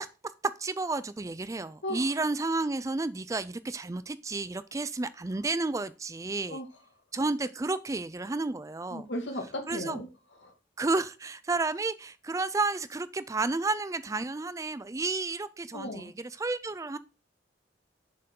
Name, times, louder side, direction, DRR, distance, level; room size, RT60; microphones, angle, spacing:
voice 1, 0.4-6.6 7.1-9.1 9.7-10.0 10.8-17.0, right 3 dB, 15° right, 0.4 m, -31 dB
voice 2, 8.9-10.1 10.4-10.5 15.7-16.1, left 1 dB, 85° left, 2.3 m, -36 dB
7.3 x 6.7 x 3.8 m
head